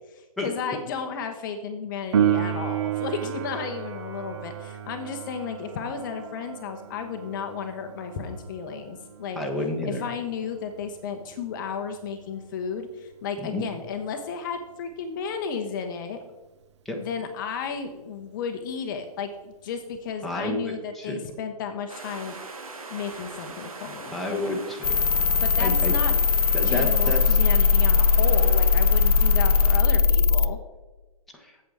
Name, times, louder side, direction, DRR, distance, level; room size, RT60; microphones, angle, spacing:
voice 1, 0.1-9.4 9.8-16.2 17.0-22.4 22.9-24.4 25.4-26.2 26.6-30.6, left 6 dB, 35° left, 6 dB, 0.8 m, -33 dB
Piano, 2.1-12.5 20.1-20.2, right 9 dB, 50° right, 0.6 m, -32 dB
voice 2, 9.4-10.0 13.4-13.6 16.8-17.0 20.2-21.2 24.1-25.0 25.6-25.9 26.5-27.4 31.3-31.6, left 1 dB, ahead, -1 dB, 1.0 m, -30 dB
sound 1, 21.9-29.8, right 3 dB, 65° right, 1.6 m, -41 dB
sound 2, 24.8-30.5, left 5 dB, 80° left, 0.5 m, -20 dB
8.1 x 7.6 x 4.6 m, 1.1 s
figure-of-eight pair, 130°, 19 cm